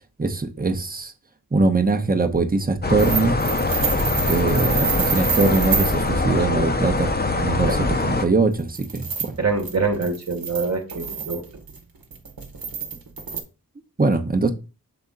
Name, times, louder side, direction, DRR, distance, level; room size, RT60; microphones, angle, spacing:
voice 1, 0.2-1.1 1.5-3.3 4.3-9.3 14.0-14.5, right 3 dB, 25° right, 0.9 m, -22 dB
sound 1, 2.8-8.2, left 2 dB, 25° left, 0.7 m, -23 dB
sound 2, 3.0-6.0 8.4-13.4, right 5 dB, 70° right, 1.1 m, -28 dB
voice 2, 9.4-11.4, right 4 dB, 45° right, 1.2 m, -25 dB
6.9 x 3.6 x 3.9 m
cardioid pair, 40°, 36 cm